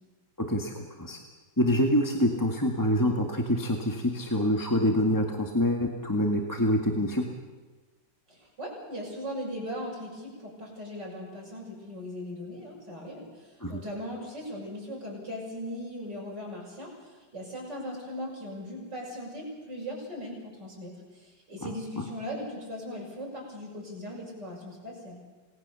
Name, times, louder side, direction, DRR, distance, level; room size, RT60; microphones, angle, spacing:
voice 1, 0.5-1.2 1.6-7.3 13.6-13.8, left 1 dB, 10° left, 1 dB, 1.7 m, -26 dB
voice 2, 8.3-25.2, equal, 55° right, -2 dB, 7.0 m, -39 dB
28.0 x 19.5 x 6.9 m, 1.3 s
omnidirectional pair, 2.2 m